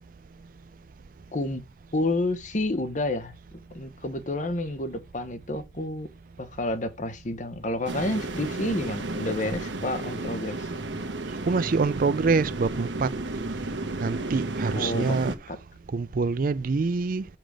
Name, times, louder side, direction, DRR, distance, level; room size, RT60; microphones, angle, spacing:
voice 1, 1.3-1.6 1.9-3.3 3.7-6.1 6.4-10.7 14.7-15.6, left 2 dB, 45° left, 1.0 m, -30 dB
sound 1, 7.9-15.4, right 2 dB, 85° right, 1.2 m, -32 dB
voice 2, 11.5-13.1 14.0-15.3 15.9-17.2, right 4 dB, 50° right, 0.4 m, -25 dB
5.9 x 5.0 x 6.3 m
head